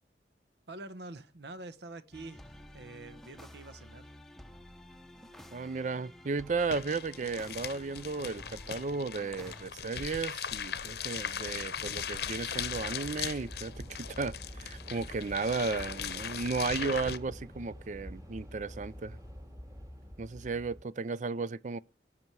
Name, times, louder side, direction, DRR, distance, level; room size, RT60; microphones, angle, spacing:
voice 1, 0.7-4.1, right 2 dB, 70° right, 1.0 m, -46 dB
sound 1, 2.1-9.7, left 1 dB, ahead, 0.8 m, -51 dB
voice 2, 5.5-19.2 20.2-21.8, right 4 dB, 45° right, 0.5 m, -34 dB
sound 2, 6.6-17.2, left 8 dB, 60° left, 0.8 m, -39 dB
Train / Subway metro underground, 9.1-20.8, equal, 20° right, 2.1 m, -48 dB
17.5 x 6.9 x 4.6 m
head